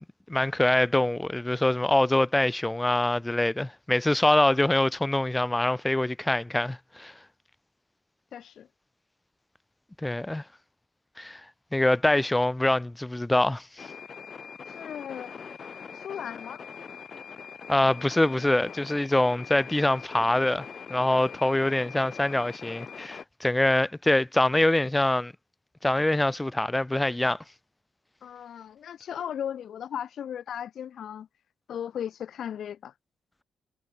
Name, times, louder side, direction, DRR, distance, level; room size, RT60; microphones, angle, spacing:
voice 1, 0.0-7.1 10.0-10.4 11.2-11.4 11.7-13.9 17.7-25.3 25.8-27.4, left 1 dB, 10° left, 0.7 m, -24 dB
voice 2, 8.3-8.7 14.7-15.3 15.9-16.6 28.2-31.3 31.7-32.9, left 9 dB, 65° left, 2.3 m, -36 dB
sound 1, 13.8-23.2, left 6 dB, 45° left, 2.3 m, -42 dB
cardioid pair, 90°, 0 cm